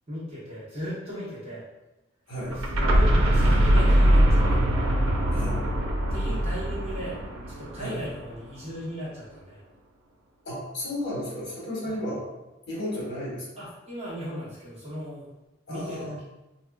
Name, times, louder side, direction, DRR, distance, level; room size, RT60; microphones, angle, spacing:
voice 1, 0.1-1.6 2.5-4.6 6.1-7.2 7.6-9.6 11.8-11.9 13.6-15.3 15.7-16.2, equal, 30° right, -9 dB, 1.1 m, -37 dB
sound 1, 2.5-8.3, equal, 85° right, 0.5 m, -22 dB
voice 2, 10.4-12.2 12.7-13.5 15.7-16.2, left 1 dB, 55° left, -5 dB, 1.2 m, -33 dB
3.5 x 2.7 x 2.3 m, 1.0 s
head